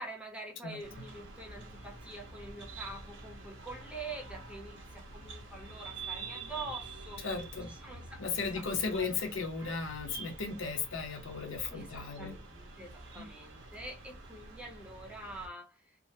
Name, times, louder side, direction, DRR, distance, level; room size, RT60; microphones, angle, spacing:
voice 1, 0.0-8.2 8.5-9.2 11.7-16.0, right 2 dB, 5° right, 0.8 m, -46 dB
sound 1, 0.8-15.5, right 3 dB, 70° right, 1.0 m, -47 dB
voice 2, 7.2-7.7 8.2-12.3 13.2-13.3, left 5 dB, 80° left, 0.9 m, -36 dB
3.6 x 2.1 x 2.7 m
head